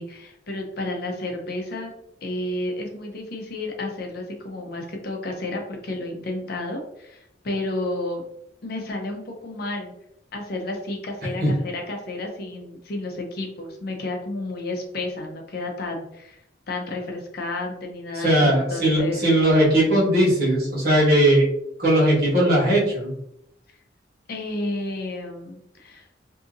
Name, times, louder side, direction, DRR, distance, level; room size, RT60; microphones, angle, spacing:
voice 1, 0.0-1.9 2.2-8.2 8.6-9.9 10.3-16.4 16.7-19.2 24.3-26.1, left 2 dB, 55° left, 2 dB, 0.5 m, -31 dB
voice 2, 18.1-21.4 21.8-23.1, right 1 dB, 55° right, -6 dB, 1.3 m, -19 dB
2.7 x 2.5 x 2.5 m, 0.79 s
head